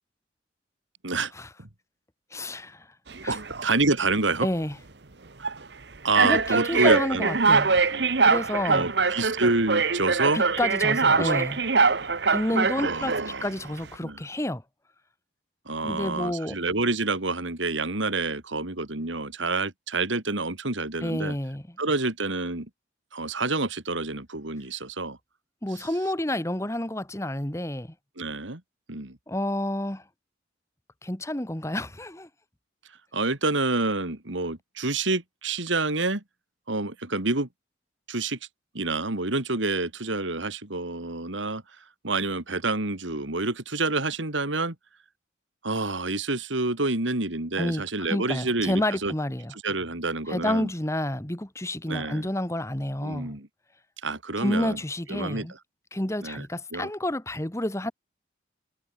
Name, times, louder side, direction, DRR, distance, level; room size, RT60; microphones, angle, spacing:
voice 1, 2.3-2.9 3.2-3.4 4.4-4.8 6.2-7.7 8.2-9.2 10.3-11.6 12.3-13.1 13.4-14.6 15.8-16.6 21.0-21.8 25.6-27.9 29.3-30.0 31.0-32.3 47.6-49.5 50.3-53.3 54.4-55.5 55.9-57.9, left 1 dB, 15° left, 1.4 m, -29 dB
sound 1, 3.1-3.7 4.4-4.6 5.4-5.6 6.2-13.4, right 4 dB, 60° right, 1.2 m, -23 dB
voice 2, 3.3-4.5 5.4-5.5 6.0-7.3 7.9-8.3 8.7-10.4 11.2-11.4 12.8-13.5 14.0-14.2 15.7-21.3 21.8-22.7 23.1-25.2 28.2-28.6 28.9-29.2 33.1-36.2 36.7-37.5 38.1-38.4 38.7-41.6 42.0-44.7 45.6-49.1 49.6-50.7 51.9-52.3 53.0-53.5 54.0-54.8 55.1-55.5 56.2-56.4 56.7-56.9, right 3 dB, 80° right, 2.9 m, -28 dB
head